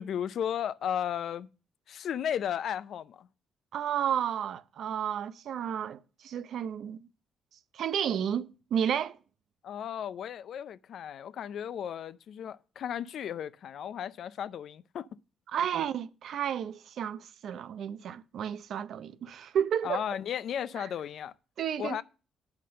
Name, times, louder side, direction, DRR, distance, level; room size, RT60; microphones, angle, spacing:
voice 1, 0.0-1.5 1.9-3.3 9.6-15.1 19.8-21.3 21.8-22.0, left 9 dB, 65° left, 0.4 m, -34 dB
voice 2, 3.7-7.0 7.7-9.2 15.5-20.0 21.6-22.0, right 9 dB, 70° right, 0.6 m, -32 dB
8.4 x 5.8 x 6.5 m
cardioid pair, 90°, 0 cm